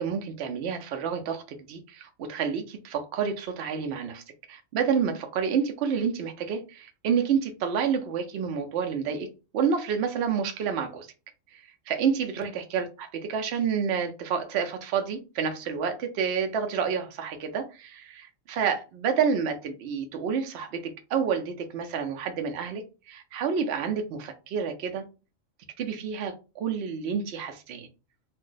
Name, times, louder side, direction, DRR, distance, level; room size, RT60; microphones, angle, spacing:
voice 1, 0.0-4.2 4.5-9.3 9.5-11.1 11.5-25.0 25.8-27.9, right 6 dB, 65° right, 0.7 m, -29 dB
2.5 x 2.1 x 3.7 m
omnidirectional pair, 1.3 m